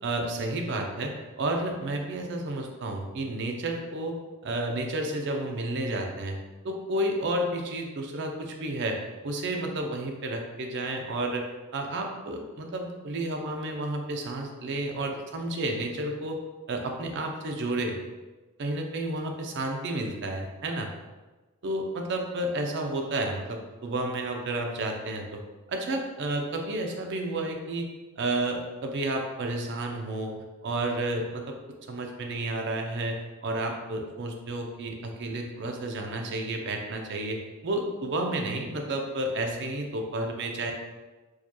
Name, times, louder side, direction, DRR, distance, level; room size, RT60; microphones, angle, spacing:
voice 1, 0.0-4.1 4.4-6.4 6.6-11.4 11.7-16.4 16.7-18.0 18.6-20.9 21.6-25.4 25.7-27.9 28.2-31.6 31.9-40.7, right 1 dB, 55° right, 2 dB, 0.5 m, -31 dB
4.6 x 2.3 x 2.9 m, 1.2 s
head